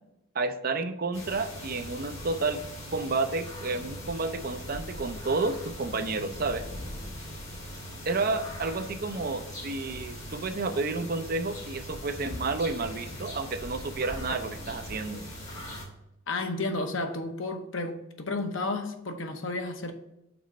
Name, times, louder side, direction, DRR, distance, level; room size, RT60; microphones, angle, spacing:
voice 1, 0.3-2.6 2.9-6.6 8.1-15.2, right 3 dB, 45° right, 9 dB, 0.5 m, -31 dB
sound 1, 1.1-15.8, equal, 35° left, 2.6 m, -40 dB
voice 2, 16.3-19.9, left 2 dB, 70° left, 6 dB, 0.9 m, -32 dB
6.1 x 4.2 x 6.2 m, 0.87 s
head